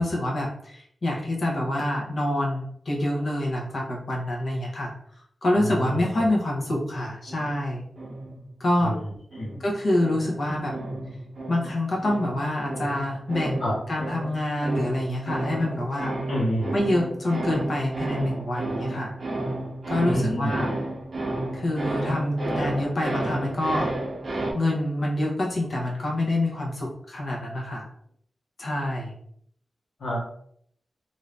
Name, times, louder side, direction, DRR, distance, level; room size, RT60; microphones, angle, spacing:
voice 1, 0.0-4.9 5.4-7.9 8.6-9.0 9.6-10.7 11.5-13.6 13.9-16.1 16.7-19.2 19.9-20.7 21.5-23.9 24.5-27.9 28.6-29.1, left 1 dB, 50° left, -2 dB, 0.9 m, -26 dB
voice 2, 5.5-6.3 8.8-9.1 9.3-9.6 13.6-13.7 16.3-16.7 20.0-20.6 30.0-30.2, equal, 80° left, -6 dB, 1.1 m, -28 dB
sound 1, 6.5-8.9 9.3-24.5, right 1 dB, 45° right, 0.6 m, -32 dB
2.7 x 2.6 x 3.3 m, 0.66 s
wide cardioid pair, 145°, 0 cm